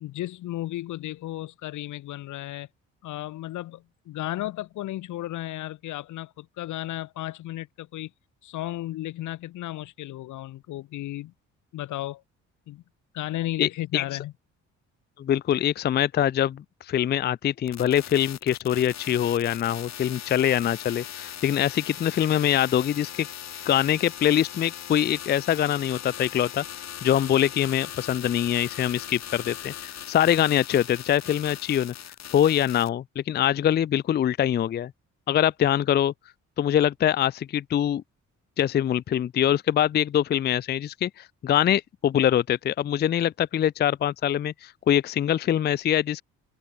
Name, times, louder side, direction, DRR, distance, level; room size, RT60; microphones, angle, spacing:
voice 1, 0.0-2.7 3.0-8.1 8.4-11.3 11.7-12.2 12.7-12.8 13.1-14.3, left 15 dB, 80° left, 1.0 m, -34 dB
voice 2, 13.6-14.0 15.2-23.3 23.7-31.9 32.3-34.9 35.3-36.1 36.6-38.0 38.6-46.2, left 10 dB, 35° left, 0.4 m, -24 dB
sound 1, 17.7-32.9, left 10 dB, 60° left, 2.3 m, -39 dB
cardioid pair, 90°, 30 cm